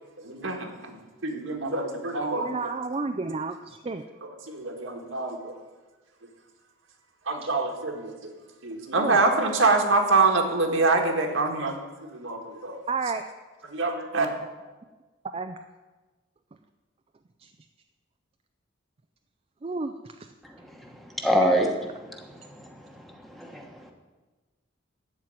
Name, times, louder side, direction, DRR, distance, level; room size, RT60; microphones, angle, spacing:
voice 1, 0.2-1.0 1.2-2.5 4.5-5.5 7.3-8.3 8.6-11.7 12.0-12.8 13.7-14.3, right 3 dB, 75° right, 2 dB, 1.7 m, -25 dB
voice 2, 2.4-4.0 7.4-7.5 8.9-9.2 12.9-13.2 15.3-15.6 16.5-16.6 17.4-17.5 19.6-20.3 21.4-21.5, right 4 dB, 30° right, 7 dB, 0.4 m, -31 dB
voice 3, 20.7-21.7 22.0-23.9, equal, ahead, 2 dB, 1.1 m, -27 dB
13.5 x 4.6 x 8.8 m, 1.3 s
head